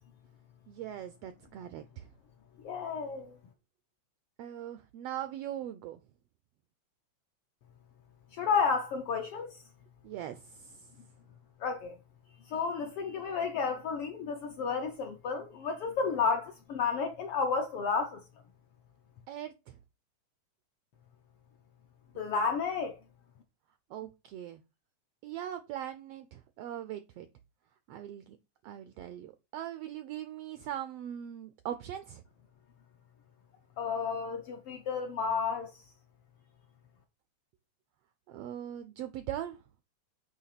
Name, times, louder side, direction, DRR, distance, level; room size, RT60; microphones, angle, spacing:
voice 1, 0.7-2.1 4.4-6.0 10.0-10.9 19.3-19.7 23.9-24.6 25.2-27.3 27.9-28.4 28.6-32.2 38.3-39.6, right 11 dB, 80° right, 1.4 m, -40 dB
voice 2, 2.6-3.4 8.3-9.5 11.6-12.0 12.5-18.2 22.2-23.0 33.8-35.7, left 5 dB, 70° left, 1.4 m, -31 dB
8.6 x 3.0 x 5.7 m
omnidirectional pair, 3.4 m